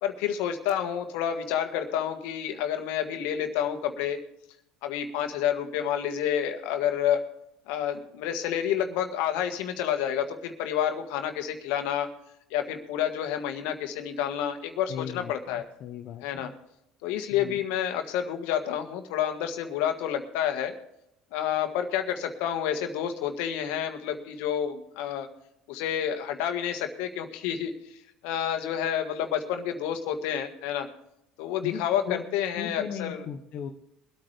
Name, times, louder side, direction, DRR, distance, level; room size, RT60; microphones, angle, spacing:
voice 1, 0.0-4.2 4.8-7.2 7.7-12.1 12.5-15.6 16.2-16.5 17.0-20.7 21.3-25.3 25.7-27.7 28.2-30.9 31.4-33.2, left 9 dB, 75° left, 6 dB, 1.6 m, -29 dB
voice 2, 14.9-16.5 17.3-17.6 31.6-32.2 32.5-33.7, left 8 dB, 60° left, 3 dB, 1.1 m, -37 dB
23.0 x 8.8 x 3.4 m, 0.83 s
hypercardioid pair, 75°, 3 cm